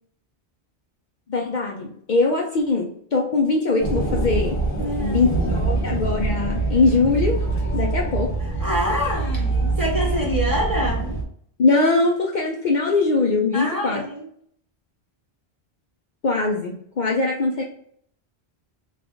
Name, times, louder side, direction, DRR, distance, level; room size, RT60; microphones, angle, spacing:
voice 1, 1.3-4.6 5.0-7.4 7.7-8.3 10.0-10.2 11.6-14.0 16.2-17.6, left 3 dB, 55° left, 0 dB, 0.6 m, -21 dB
sound 1, 3.8-11.2, right 3 dB, 20° left, 0.7 m, -24 dB
voice 2, 4.8-5.7 8.6-11.2 13.5-14.3, equal, 20° right, -3 dB, 0.7 m, -26 dB
3.6 x 2.5 x 3.5 m, 0.63 s
omnidirectional pair, 1.1 m